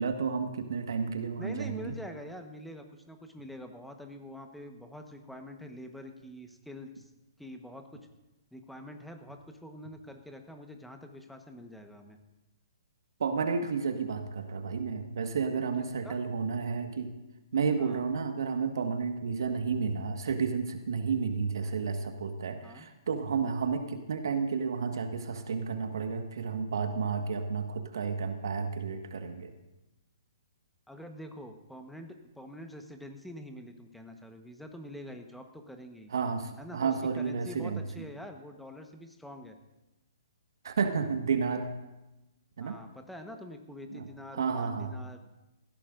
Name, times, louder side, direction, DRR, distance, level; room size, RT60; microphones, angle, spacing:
voice 1, 0.0-1.9 13.2-17.1 17.5-29.5 36.1-37.8 40.6-41.7 42.6-42.8 43.9-44.0 44.3-44.9, right 5 dB, 65° right, 6 dB, 1.6 m, -31 dB
voice 2, 1.4-7.1 7.4-8.1 8.5-12.2 16.0-16.2 17.8-18.0 22.6-22.9 30.9-36.1 36.6-39.6 42.6-45.2, equal, ahead, 4 dB, 1.2 m, -45 dB
18.5 x 15.5 x 2.6 m, 1.0 s
figure-of-eight pair, 130°, 2 cm